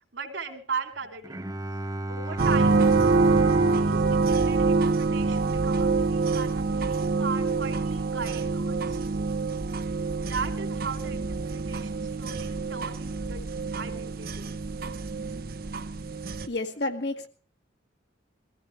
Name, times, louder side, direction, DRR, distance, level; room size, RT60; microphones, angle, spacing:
voice 1, 0.1-1.4 2.1-2.9 3.6-9.4 9.7-9.8 10.2-14.5, right 5 dB, 75° right, 2 dB, 2.9 m, -38 dB
Bowed string instrument, 1.2-5.7, right 1 dB, 20° right, 0.8 m, -35 dB
sound 1, 2.4-16.5, right 3 dB, 50° right, 0.8 m, -26 dB
voice 2, 16.4-17.3, left 2 dB, 60° left, 5 dB, 1.8 m, -30 dB
23.0 x 14.5 x 3.2 m, 0.40 s
head